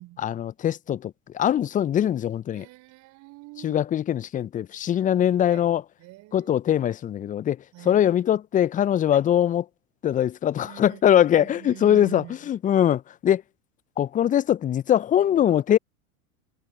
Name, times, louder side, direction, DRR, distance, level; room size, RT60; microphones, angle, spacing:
voice 1, 0.2-2.6 3.6-5.8 6.3-9.7 10.0-13.4 14.0-15.8, left 10 dB, 20° left, 0.7 m, -22 dB
voice 2, 2.5-3.8 5.5-5.7 6.0-6.5 7.7-8.0 10.6-12.4, right 19 dB, 40° right, 5.2 m, -44 dB
figure-of-eight pair, 90°, 43 cm